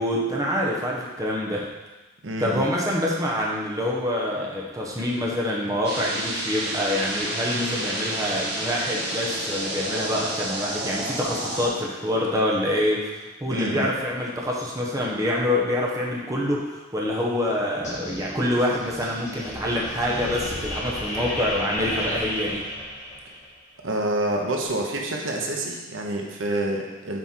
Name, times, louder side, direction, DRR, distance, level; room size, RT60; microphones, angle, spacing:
voice 1, 0.0-1.7 2.4-22.7, left 1 dB, 20° right, -3 dB, 1.1 m, -26 dB
voice 2, 2.2-2.6 13.5-13.9 23.8-27.2, right 1 dB, 85° right, 0 dB, 1.0 m, -27 dB
sound 1, 5.8-11.7, right 1 dB, 60° right, 1.9 m, -30 dB
sound 2, 17.8-23.5, left 1 dB, 40° left, 2.0 m, -33 dB
7.5 x 4.7 x 4.5 m, 1.1 s
head